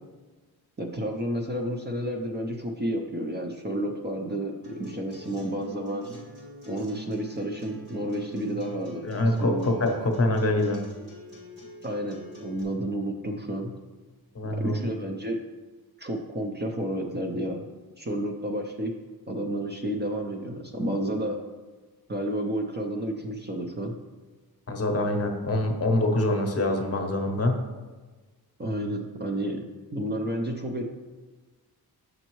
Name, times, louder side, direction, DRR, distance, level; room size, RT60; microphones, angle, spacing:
voice 1, 0.8-6.1 6.7-9.7 11.8-13.7 14.4-15.4 16.0-17.6 18.0-19.0 19.3-21.4 22.1-24.0 28.6-29.7 29.9-30.8, right 1 dB, 25° right, 2 dB, 0.6 m, -31 dB
Acoustic guitar, 4.6-12.6, right 1 dB, 65° right, 2.4 m, -44 dB
voice 2, 9.0-10.8 14.3-14.7 24.7-27.6, left 1 dB, 40° left, 3 dB, 0.8 m, -25 dB
7.9 x 6.4 x 3.0 m, 1.3 s
wide cardioid pair, 160°, 38 cm